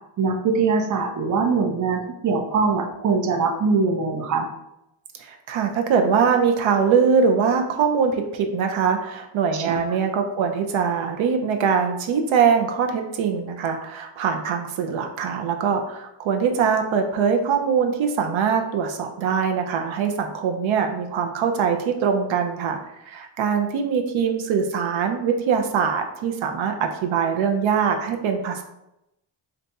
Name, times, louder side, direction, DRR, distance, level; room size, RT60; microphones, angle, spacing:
voice 1, 0.2-4.5 9.5-10.0, right 4 dB, 40° right, 5 dB, 0.5 m, -22 dB
voice 2, 5.2-22.8 23.1-28.6, right 6 dB, 90° right, 4 dB, 0.5 m, -22 dB
2.7 x 2.3 x 4.0 m, 0.87 s
wide cardioid pair, 115°, 46 cm